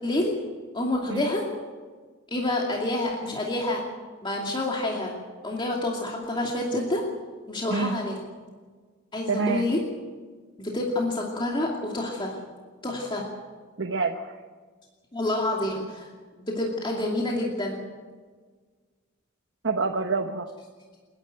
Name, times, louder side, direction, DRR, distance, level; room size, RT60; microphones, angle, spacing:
voice 1, 0.0-0.3 0.7-1.4 2.3-3.8 4.2-5.2 5.4-7.0 7.5-8.2 9.1-9.8 10.6-12.3 12.8-13.3 15.1-16.1 16.4-17.8, left 1 dB, 25° left, -1 dB, 2.6 m, -28 dB
voice 2, 9.3-9.7 13.8-14.4 19.6-20.5, right 4 dB, 60° right, 3 dB, 1.2 m, -27 dB
28.5 x 11.0 x 9.2 m, 1.5 s
head